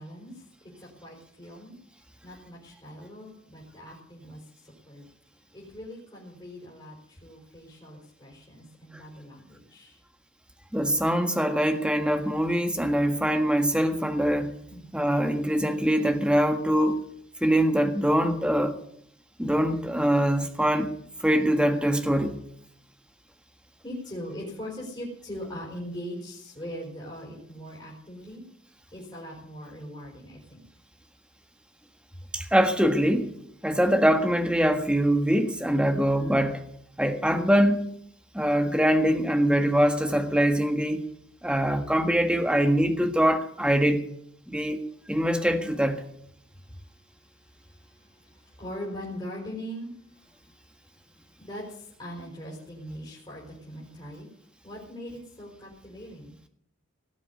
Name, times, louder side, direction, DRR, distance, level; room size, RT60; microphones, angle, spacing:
voice 1, 0.0-1.8 2.2-5.1 5.5-10.0 14.7-14.9 23.8-28.4 28.9-30.6 46.5-50.7 51.4-54.3 54.6-56.3, equal, 25° left, 4.8 m, -41 dB
voice 2, 10.7-14.5 14.9-17.0 17.4-18.8 19.4-20.9 21.2-22.3 32.3-33.3 33.6-36.6 37.0-37.9 38.3-41.1 41.4-44.1 44.5-44.8 45.1-46.0, equal, 5° right, 1.5 m, -23 dB
18.0 x 7.3 x 9.6 m
head